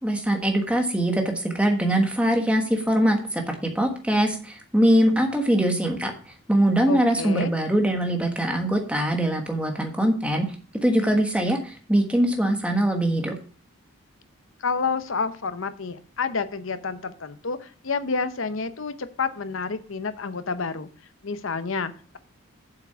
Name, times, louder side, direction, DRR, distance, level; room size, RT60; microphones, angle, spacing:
voice 1, 0.0-10.5 10.8-13.3, right 1 dB, 5° right, 3 dB, 1.3 m, -22 dB
voice 2, 6.9-7.5 14.6-20.9 21.2-22.2, left 4 dB, 70° left, 11 dB, 0.8 m, -29 dB
7.5 x 6.1 x 5.7 m, 0.41 s
head